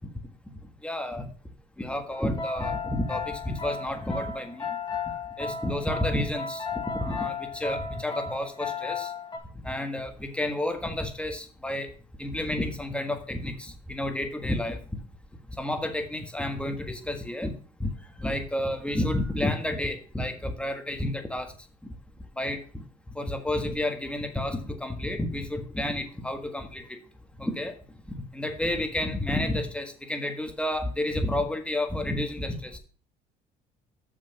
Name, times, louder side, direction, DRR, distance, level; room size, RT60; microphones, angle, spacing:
voice 1, 0.8-1.3 1.8-9.1 9.6-11.9 12.2-14.8 15.6-17.5 17.8-17.9 18.2-21.5 22.4-22.6 23.1-27.0 27.4-27.7 28.1-32.8, left 1 dB, 5° left, 6 dB, 1.5 m, -30 dB
sound 1, 2.1-9.4, left 5 dB, 25° left, 1.7 m, -34 dB
6.8 x 6.3 x 5.8 m, 0.40 s
cardioid pair, 110°, 17 cm